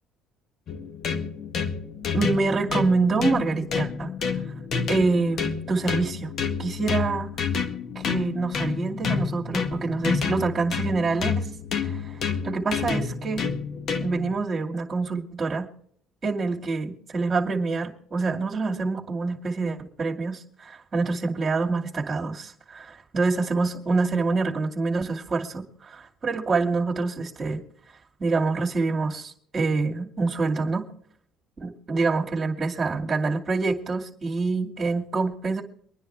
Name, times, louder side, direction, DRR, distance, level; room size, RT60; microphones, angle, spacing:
sound 1, 0.7-14.4, left 6 dB, 50° left, 1.7 m, -29 dB
voice 1, 2.1-4.4 4.9-6.3 6.6-7.3 7.9-11.5 11.8-13.5 14.0-15.7 16.2-27.6 28.2-30.9 31.6-35.6, right 3 dB, 25° right, -2 dB, 2.4 m, -26 dB
25.0 x 10.0 x 3.4 m, 0.62 s
cardioid pair, 110°, 0 cm